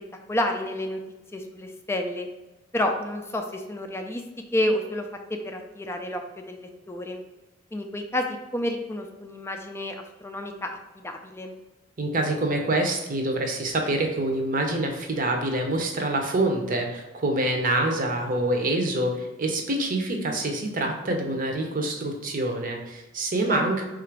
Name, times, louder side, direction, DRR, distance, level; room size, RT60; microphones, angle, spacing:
voice 1, 0.3-1.0 1.3-2.3 2.7-4.2 4.5-5.1 5.4-7.2 7.7-11.5 23.5-23.7, left 1 dB, 15° left, 4 dB, 0.3 m, -30 dB
voice 2, 12.0-23.8, right 1 dB, 45° right, 3 dB, 0.7 m, -26 dB
3.7 x 2.5 x 4.5 m, 1.0 s
head